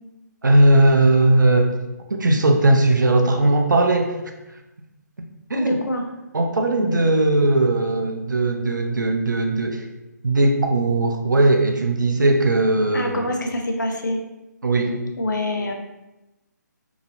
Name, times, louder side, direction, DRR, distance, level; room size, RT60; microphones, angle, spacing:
voice 1, 0.4-1.8 2.1-4.2 5.5-5.8 6.3-9.8 10.2-13.2 14.6-15.0, right 2 dB, 85° right, 4 dB, 0.5 m, -18 dB
voice 2, 5.5-6.0 12.9-14.2 15.2-15.7, left 1 dB, 80° left, 2 dB, 0.6 m, -25 dB
2.8 x 2.7 x 2.6 m, 0.99 s
figure-of-eight pair, 145°, 10 cm